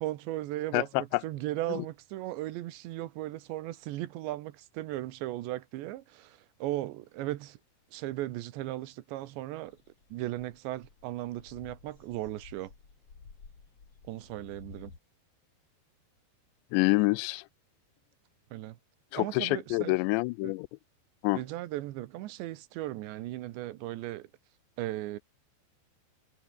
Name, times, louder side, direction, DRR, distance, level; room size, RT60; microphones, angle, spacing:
voice 1, 0.0-7.6 7.9-9.8 10.1-12.7 14.1-14.9 18.5-18.8 19.2-20.0 20.4-20.5 21.3-24.3 24.8-25.2, right 15 dB, 90° right, 3.4 m, -37 dB
voice 2, 0.7-1.2 1.7-1.9 16.7-17.4 19.1-20.7 21.2-21.4, left 24 dB, 85° left, 2.8 m, -27 dB
sound 1, 9.6-15.0, left 5 dB, 35° left, 4.6 m, -53 dB
omnidirectional pair, 5.0 m